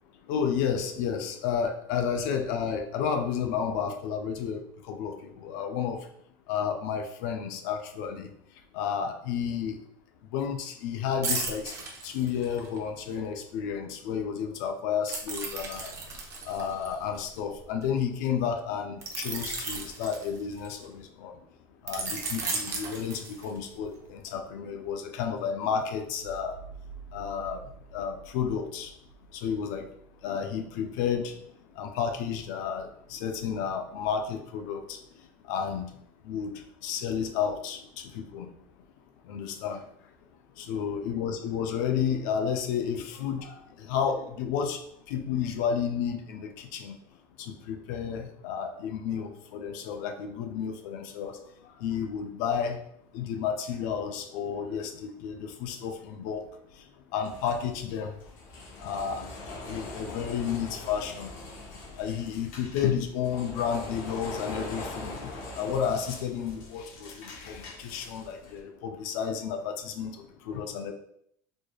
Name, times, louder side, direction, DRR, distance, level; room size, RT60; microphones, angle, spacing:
voice 1, 0.3-4.6 4.9-6.0 6.5-8.3 8.7-9.8 10.3-11.7 12.0-15.9 16.5-21.3 21.8-26.5 27.1-27.6 27.9-28.9 29.3-29.9 30.2-31.3 31.8-35.0 35.5-35.9 36.2-37.8 38.1-38.5 39.3-39.8 40.6-44.8 45.1-47.0 47.4-51.4 51.8-52.8 53.1-56.4 57.1-58.1 58.8-59.3 59.7-61.3 62.0-65.2 65.6-70.9, left 7 dB, 85° left, 5 dB, 0.5 m, -31 dB
sound 1, 11.2-12.8 15.1-17.8 19.0-20.9 21.9-23.7 24.1-24.3, right 3 dB, 30° right, 0.6 m, -35 dB
sound 2, 57.2-68.6, left 2 dB, 70° left, 1.1 m, -42 dB
4.1 x 3.2 x 2.3 m, 0.70 s
cardioid pair, 165°, 10 cm